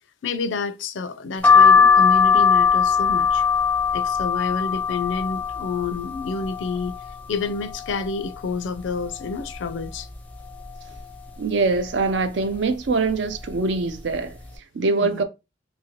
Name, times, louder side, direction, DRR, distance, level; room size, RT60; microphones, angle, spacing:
voice 1, 0.2-3.4 3.9-6.9 7.3-10.1 15.0-15.2, left 4 dB, 80° left, 0.4 m, -29 dB
sound 1, 1.4-7.1 7.6-8.3 8.7-8.8 9.0-10.1 10.6-11.0 11.7-12.1 12.9-13.1 13.4-13.6, left 6 dB, 10° left, 0.5 m, -19 dB
voice 2, 11.4-14.4 14.7-15.2, right 3 dB, 65° right, 0.5 m, -23 dB
2.8 x 2.6 x 2.9 m
head